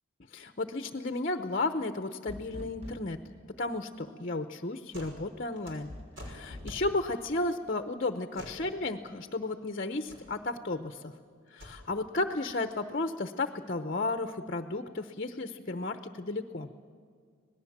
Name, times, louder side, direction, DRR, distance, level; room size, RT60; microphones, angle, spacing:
voice 1, 0.3-3.2 3.6-5.9 6.2-11.1 11.5-16.7, left 2 dB, 40° left, 8 dB, 0.8 m, -33 dB
sound 1, 2.3-3.3 5.9-6.8, left 1 dB, 30° right, 1.3 m, -44 dB
sound 2, 4.9-5.2 5.5-6.9 8.3-8.6 9.9-10.2 11.4-11.7, equal, 60° right, 5.7 m, -46 dB
26.0 x 18.5 x 7.3 m, 2.1 s
head